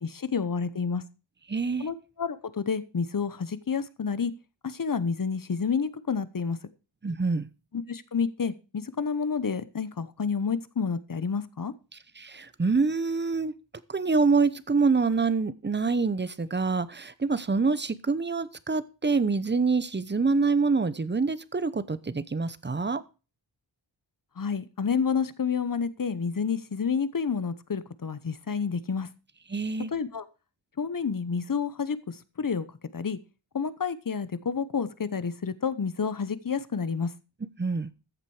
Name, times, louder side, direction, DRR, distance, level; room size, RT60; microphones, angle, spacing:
voice 1, 0.0-1.0 1.8-4.3 4.6-6.6 7.7-11.7 24.4-29.1 29.9-30.2 30.8-32.7 32.9-33.2 33.5-37.1, left 6 dB, 45° left, 1.0 m, -29 dB
voice 2, 1.5-1.9 7.0-7.5 12.2-13.5 13.9-23.0 29.5-29.9 37.6-37.9, right 4 dB, 25° right, 0.8 m, -26 dB
14.5 x 7.4 x 4.8 m
wide cardioid pair, 115°, 46 cm